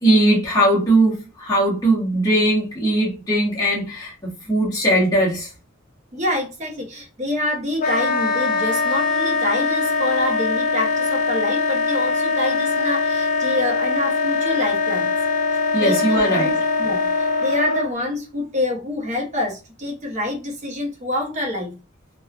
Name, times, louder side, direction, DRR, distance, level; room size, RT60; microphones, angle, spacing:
voice 1, 0.0-5.5 15.7-16.5, right 1 dB, 20° left, 1.0 m, -19 dB
voice 2, 6.1-15.1 15.7-16.5 16.8-21.7, left 1 dB, 35° right, 0.8 m, -26 dB
Wind instrument woodwind instrument, 7.8-17.9, left 4 dB, 35° left, 0.3 m, -22 dB
3.2 x 2.2 x 2.3 m
head